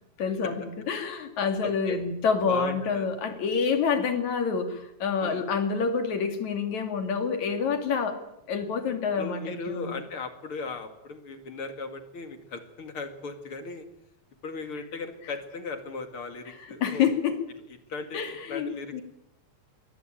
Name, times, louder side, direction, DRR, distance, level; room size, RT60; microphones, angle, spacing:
voice 1, 0.2-8.2 8.5-10.0 16.8-17.4 18.1-19.0, left 6 dB, 70° left, 6 dB, 3.8 m, -27 dB
voice 2, 1.6-2.0 2.5-3.1 5.2-5.4 8.9-13.9 14.4-17.1 17.9-19.0, left 4 dB, 50° left, 7 dB, 2.7 m, -37 dB
23.0 x 19.5 x 9.0 m, 0.83 s
omnidirectional pair, 3.4 m